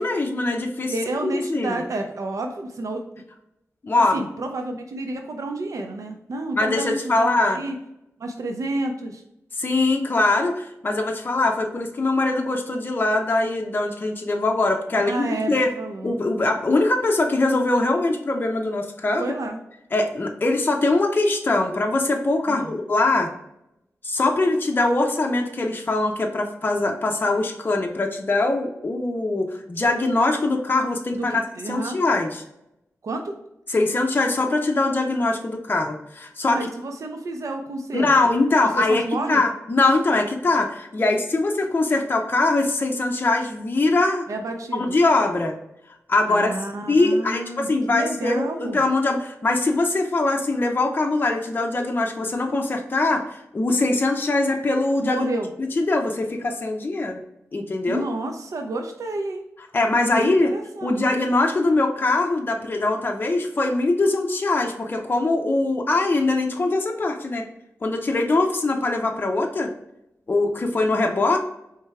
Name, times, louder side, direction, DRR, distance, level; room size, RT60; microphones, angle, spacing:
voice 1, 0.0-0.9 1.2-1.8 3.8-4.2 6.6-7.6 9.6-15.7 16.0-19.2 19.9-23.3 24.0-31.4 31.7-32.4 33.7-36.7 37.9-39.0 39.3-44.3 44.7-45.5 46.1-46.5 46.9-55.3 55.6-57.2 57.5-58.0 59.7-60.5 60.8-67.4 67.8-69.7 70.3-71.4, left 2 dB, 35° left, 2 dB, 0.6 m, -22 dB
voice 2, 0.9-3.0 3.9-7.7 8.2-9.2 14.9-16.1 19.2-19.6 22.5-22.7 31.1-31.3 31.5-32.0 33.0-33.3 36.5-38.3 38.7-39.4 44.3-45.0 46.3-48.8 55.0-55.5 57.9-59.4 60.0-61.0, right 2 dB, 80° right, 4 dB, 0.6 m, -30 dB
4.4 x 3.3 x 3.4 m, 0.84 s
wide cardioid pair, 95°, 5 cm